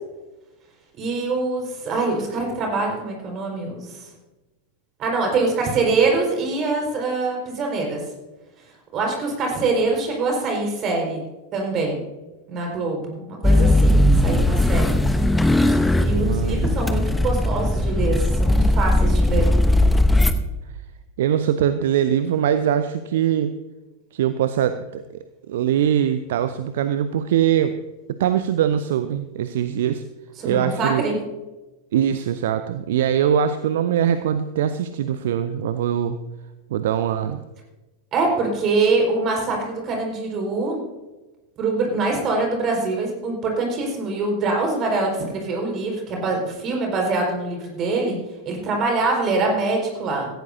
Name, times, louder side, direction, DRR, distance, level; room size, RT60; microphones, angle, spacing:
voice 1, 1.0-4.1 5.0-8.0 8.9-11.2 11.5-12.0 12.5-15.0 16.0-19.5 30.4-31.2 38.1-40.8 41.6-48.2 48.4-50.3, right 3 dB, 30° right, 1 dB, 4.9 m, -24 dB
sound 1, 13.4-20.3, left 1 dB, 5° left, 1.0 m, -18 dB
voice 2, 16.1-16.8 21.2-23.6 24.1-27.8 28.2-30.0 30.4-31.1 31.9-36.2 36.7-37.4, right 9 dB, 55° right, 11 dB, 0.6 m, -22 dB
17.0 x 15.5 x 2.7 m, 1.1 s
figure-of-eight pair, 90°, 0 cm